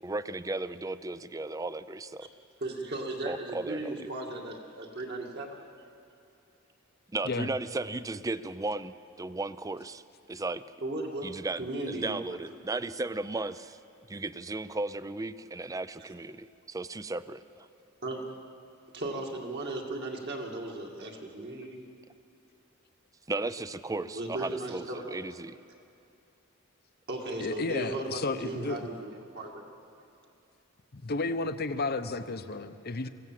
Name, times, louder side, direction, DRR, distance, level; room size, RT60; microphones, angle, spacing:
voice 1, 0.0-2.3 3.3-4.0 7.1-10.0 10.3-10.6 11.2-13.8 14.1-17.7 23.3-25.6, right 2 dB, 15° right, 14 dB, 0.5 m, -35 dB
voice 2, 2.6-5.6 10.8-11.3 11.6-12.2 18.0-18.2 18.9-21.8 24.1-25.2 27.1-29.7, right 2 dB, 55° right, 0 dB, 2.3 m, -36 dB
voice 3, 27.4-28.9 30.9-33.1, left 3 dB, 50° left, 11 dB, 0.8 m, -32 dB
24.0 x 16.0 x 7.6 m, 2.6 s
head